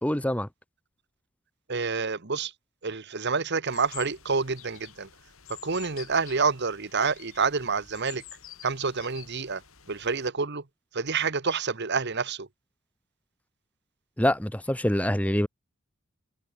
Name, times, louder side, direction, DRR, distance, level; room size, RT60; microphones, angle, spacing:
voice 1, 0.0-0.5 14.2-15.5, left 1 dB, 5° left, 1.2 m, -25 dB
voice 2, 1.7-2.5 2.8-5.1 5.6-8.2 8.6-9.6 9.9-10.6 10.9-12.5, right 5 dB, 50° right, 1.2 m, -28 dB
sound 1, 3.7-10.3, left 11 dB, 65° left, 4.7 m, -48 dB
head